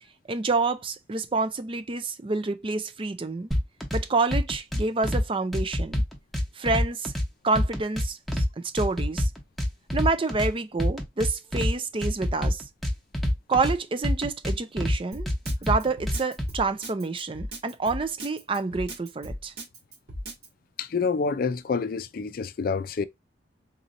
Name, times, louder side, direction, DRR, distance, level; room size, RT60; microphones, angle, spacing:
voice 1, 0.3-3.5 3.9-6.0 6.6-7.1 7.4-9.3 9.9-12.6 13.5-15.3 15.6-19.5, right 3 dB, 30° right, 0.5 m, -28 dB
sound 1, 3.5-4.0 4.3-5.2 5.5-7.3 7.6-8.5 8.8-10.5 10.8-11.7 12.0-13.7 14.0-15.0 15.3-16.5, left 1 dB, ahead, 1.0 m, -25 dB
Drum kit, 15.1-20.5, equal, 60° right, 2.0 m, -37 dB
voice 2, 20.8-23.0, left 5 dB, 50° left, 0.4 m, -27 dB
4.0 x 2.9 x 2.5 m
head